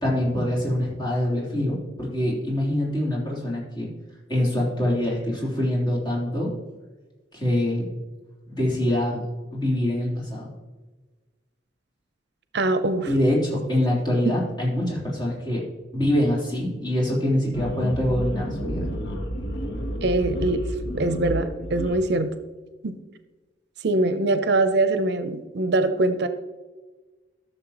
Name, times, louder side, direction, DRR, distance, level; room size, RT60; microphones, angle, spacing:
voice 1, 0.0-3.9 4.3-6.5 7.3-7.9 8.5-9.2 9.5-10.5 13.1-15.6 15.9-18.9, left 1 dB, 25° left, -6 dB, 3.3 m, -24 dB
voice 2, 12.5-13.1 20.0-20.6 20.9-22.3 22.8-22.9 23.8-26.3, right 2 dB, 65° right, 10 dB, 0.6 m, -23 dB
sound 1, 17.5-22.0, equal, 70° left, 1.1 m, -31 dB
13.5 x 6.9 x 3.0 m, 1.3 s
head